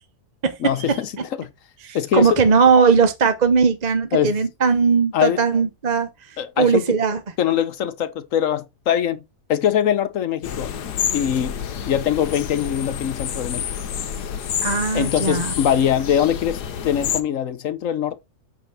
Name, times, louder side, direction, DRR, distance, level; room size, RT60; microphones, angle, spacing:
voice 1, 0.6-1.1 1.4-1.5 1.9-2.4 4.1-4.4 5.1-5.4 6.4-6.8 7.4-9.2 9.5-10.8 11.1-11.6 11.8-13.7 14.9-18.2, left 9 dB, 60° left, 1.2 m, -22 dB
voice 2, 1.8-7.2 14.6-15.5, right 5 dB, 35° right, 0.7 m, -19 dB
sound 1, 10.4-17.2, left 8 dB, 90° left, 1.5 m, -28 dB
8.0 x 3.9 x 5.5 m
omnidirectional pair, 1.7 m